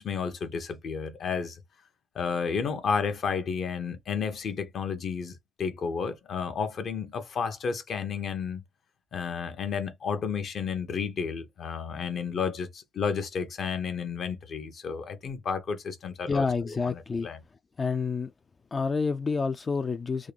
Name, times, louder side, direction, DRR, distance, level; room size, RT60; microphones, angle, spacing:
voice 1, 0.0-1.6 2.1-8.6 9.1-16.4 16.9-17.4, left 6 dB, 60° left, 0.8 m, -32 dB
voice 2, 16.3-17.3 17.8-18.3 18.7-20.3, left 4 dB, 35° left, 0.3 m, -28 dB
3.7 x 2.3 x 3.3 m
cardioid pair, 90°, 0 cm